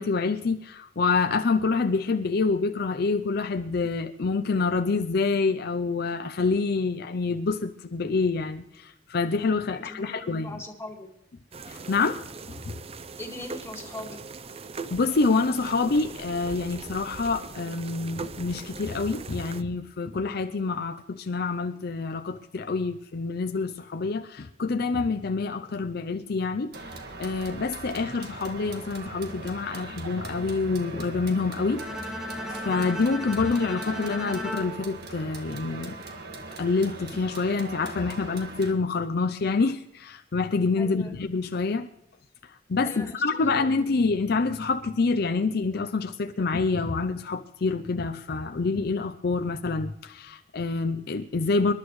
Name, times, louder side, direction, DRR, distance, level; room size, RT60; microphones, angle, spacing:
voice 1, 0.0-10.6 11.7-12.8 14.9-36.0 36.6-41.9 42.4-51.7, left 4 dB, 60° left, 8 dB, 0.5 m, -27 dB
voice 2, 9.7-11.1 13.2-14.2 40.8-41.2 42.8-43.7, left 2 dB, 15° left, 1 dB, 2.0 m, -41 dB
sound 1, 11.5-19.6, right 4 dB, 35° right, 0.5 m, -40 dB
sound 2, 26.7-38.7, right 3 dB, 60° right, 1.7 m, -40 dB
Bowed string instrument, 31.8-35.9, left 1 dB, 5° right, 1.4 m, -37 dB
26.0 x 11.5 x 3.2 m, 0.82 s
head